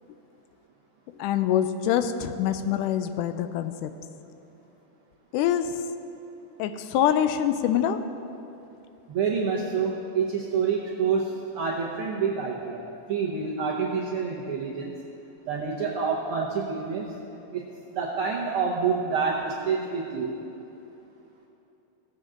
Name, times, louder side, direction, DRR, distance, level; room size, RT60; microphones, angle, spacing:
voice 1, 1.2-3.9 5.3-5.7 6.6-8.0, left 10 dB, 90° left, 10 dB, 2.1 m, -25 dB
voice 2, 9.1-14.9 15.5-17.1 17.5-20.3, right 5 dB, 70° right, -4 dB, 1.4 m, -28 dB
16.5 x 7.7 x 3.8 m, 2.9 s
omnidirectional pair, 3.6 m